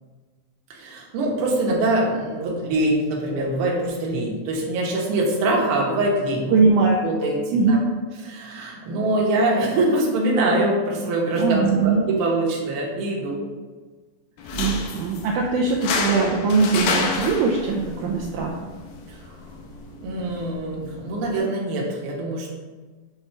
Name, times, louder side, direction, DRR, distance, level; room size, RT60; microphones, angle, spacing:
voice 1, 0.7-6.6 7.0-7.8 8.3-13.4 19.2-19.3 20.0-22.5, right 2 dB, 60° right, -2 dB, 1.5 m, -23 dB
voice 2, 6.5-7.0 7.5-7.9 11.3-12.1 14.5-18.6, right 4 dB, 80° right, -2 dB, 1.8 m, -21 dB
sound 1, 14.4-21.4, left 4 dB, 80° left, 2.3 m, -30 dB
7.2 x 3.3 x 4.5 m, 1.4 s
omnidirectional pair, 3.9 m